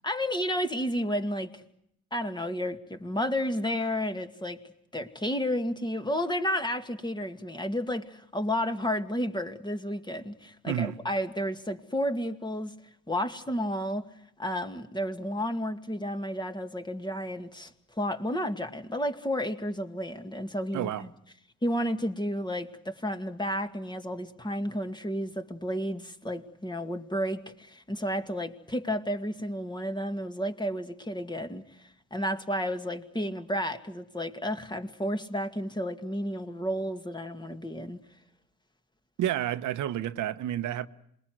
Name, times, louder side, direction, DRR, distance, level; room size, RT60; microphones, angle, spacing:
voice 1, 0.0-1.6 2.1-4.6 4.9-12.7 13.1-14.1 14.4-20.9 21.6-38.0, equal, 15° left, 2.2 m, -32 dB
voice 2, 10.7-11.0 20.7-21.1 39.2-40.9, right 11 dB, 80° right, 1.1 m, -30 dB
27.5 x 21.5 x 7.8 m
cardioid pair, 90°, 30 cm